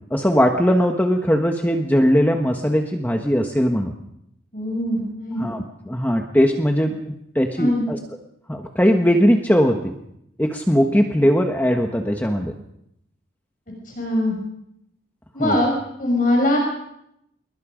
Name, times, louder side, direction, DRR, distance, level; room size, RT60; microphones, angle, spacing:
voice 1, 0.1-4.0 5.4-8.0 8.5-9.9 10.4-12.5 15.4-15.6, equal, 10° left, 3 dB, 1.3 m, -19 dB
voice 2, 4.5-5.4 7.6-7.8 14.0-14.3 15.3-15.7 16.0-16.6, left 1 dB, 45° left, 0 dB, 6.4 m, -21 dB
27.5 x 22.0 x 5.2 m, 0.79 s
head